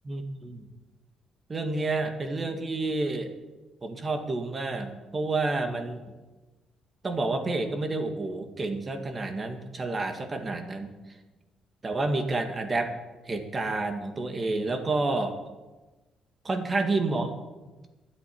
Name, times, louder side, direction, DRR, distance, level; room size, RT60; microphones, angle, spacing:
voice 1, 0.1-0.7 1.5-3.3 3.8-6.0 7.0-10.9 11.8-12.9 13.3-15.4 16.4-17.3, right 2 dB, 30° right, 6 dB, 1.9 m, -29 dB
23.0 x 8.3 x 4.6 m, 1.2 s
cardioid pair, 105°, 0 cm